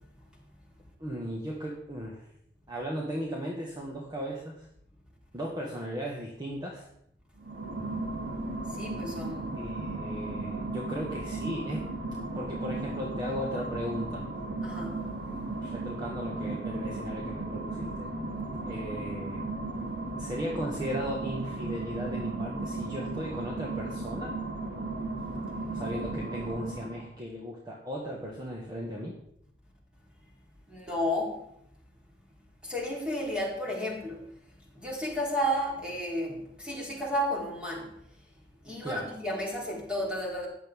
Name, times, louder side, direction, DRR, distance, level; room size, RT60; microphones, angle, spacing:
voice 1, 1.0-2.2 2.7-4.6 5.3-6.9 9.6-11.8 12.3-14.2 15.6-18.1 18.6-19.4 20.2-24.3 25.7-29.1 38.8-39.1, equal, 25° right, -2 dB, 1.7 m, -36 dB
sound 1, 7.4-27.1, right 2 dB, 75° right, 2.6 m, -35 dB
voice 2, 8.7-9.5 14.6-15.1 30.7-31.4 32.6-34.3 34.7-37.9 38.6-40.5, equal, 5° right, -3 dB, 3.8 m, -32 dB
15.0 x 10.0 x 3.7 m, 0.74 s
head